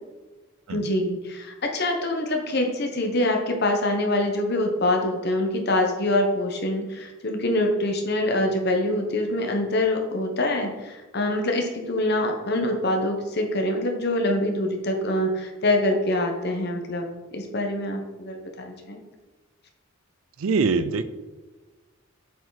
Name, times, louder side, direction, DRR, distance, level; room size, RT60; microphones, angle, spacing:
voice 1, 0.7-19.0, left 1 dB, 50° left, 3 dB, 1.1 m, -25 dB
voice 2, 20.4-21.0, right 4 dB, 75° right, 13 dB, 0.5 m, -23 dB
7.9 x 4.8 x 4.1 m, 1.2 s
head